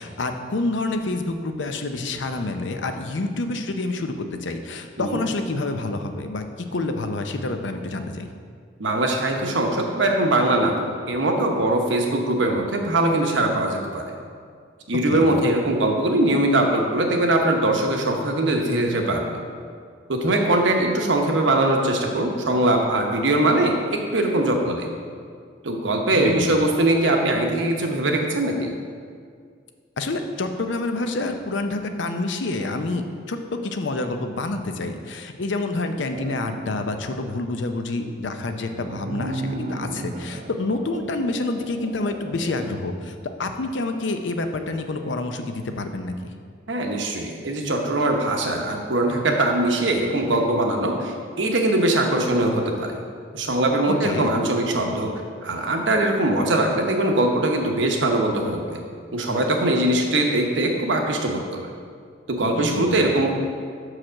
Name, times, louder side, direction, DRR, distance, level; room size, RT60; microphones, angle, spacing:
voice 1, 0.0-6.4 6.7-8.3 15.1-15.4 26.2-26.6 30.0-33.4 33.6-46.3 53.9-54.3 62.5-63.0, left 2 dB, 80° left, 7 dB, 0.6 m, -28 dB
voice 2, 8.8-14.1 14.9-19.4 20.1-24.9 25.6-28.7 46.7-53.0 53.3-55.1 55.4-58.8 59.1-61.7 62.3-63.3, right 1 dB, 85° right, 2 dB, 0.9 m, -21 dB
sound 1, 36.1-37.2 38.4-42.8, right 2 dB, 40° right, 0.3 m, -35 dB
5.9 x 4.9 x 6.3 m, 2.1 s
head